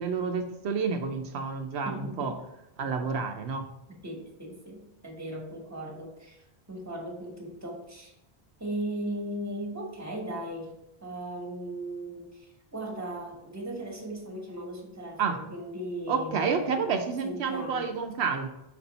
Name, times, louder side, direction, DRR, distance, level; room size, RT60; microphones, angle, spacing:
voice 1, 0.0-2.3 2.8-3.7 15.2-15.4 16.1-18.5, right 5 dB, 80° right, 5 dB, 0.9 m, -29 dB
voice 2, 1.8-2.3 4.0-8.1 8.6-10.7 11.0-16.8 17.2-17.9, right 1 dB, 15° right, 0 dB, 1.3 m, -37 dB
6.1 x 4.3 x 4.0 m, 0.89 s
omnidirectional pair, 1.1 m